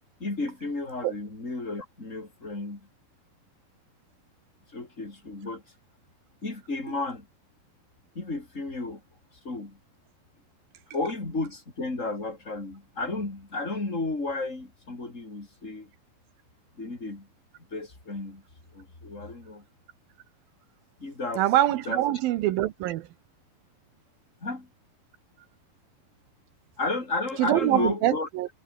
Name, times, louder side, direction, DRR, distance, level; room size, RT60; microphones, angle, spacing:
voice 1, 0.2-2.9 4.7-5.6 6.4-7.3 8.1-9.0 9.4-9.8 10.9-15.9 16.8-17.3 17.7-18.4 18.7-19.6 21.0-21.4 21.8-22.2 24.4-24.7 26.8-28.3, left 3 dB, 20° left, 4.7 m, -33 dB
voice 2, 21.4-23.1 27.4-28.5, right 14 dB, 80° right, 2.8 m, -24 dB
omnidirectional pair, 4.2 m